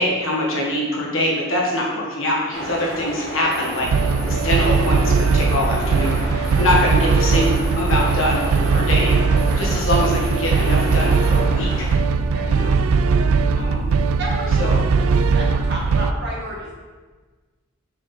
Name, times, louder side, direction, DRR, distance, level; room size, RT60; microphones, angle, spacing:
voice 1, 0.0-3.9 4.2-9.2 9.6-11.9 12.4-12.8 13.5-13.9 14.6-14.8, left 1 dB, 65° left, -3 dB, 1.7 m, -23 dB
sound 1, 2.5-11.9, equal, 10° left, 2.3 m, -32 dB
sound 2, 3.5-11.4, right 1 dB, 5° right, 1.0 m, -42 dB
sound 3, 3.8-16.1, right 4 dB, 80° right, 0.4 m, -19 dB
voice 2, 14.2-14.5 15.3-16.7, right 1 dB, 50° right, -3 dB, 1.7 m, -31 dB
6.3 x 5.2 x 4.4 m, 1.4 s
head